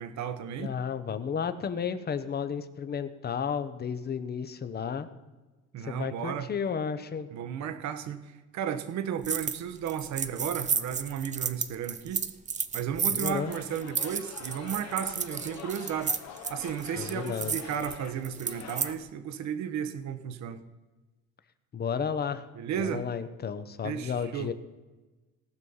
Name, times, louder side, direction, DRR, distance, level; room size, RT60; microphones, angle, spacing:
voice 1, 0.0-0.7 5.7-6.5 7.3-12.2 12.7-16.1 16.5-20.6 22.6-23.1 23.8-24.5, right 8 dB, 60° right, 11 dB, 1.1 m, -34 dB
voice 2, 0.6-5.1 5.8-7.3 13.1-13.5 17.0-17.6 21.7-22.5 22.8-24.5, left 7 dB, 30° left, 12 dB, 0.9 m, -32 dB
sound 1, 9.2-9.6 9.9-18.9, right 6 dB, 25° right, 0.6 m, -32 dB
sound 2, 13.4-18.9, left 8 dB, 55° left, 1.2 m, -45 dB
18.5 x 6.3 x 5.5 m, 1.2 s
cardioid pair, 125°, 31 cm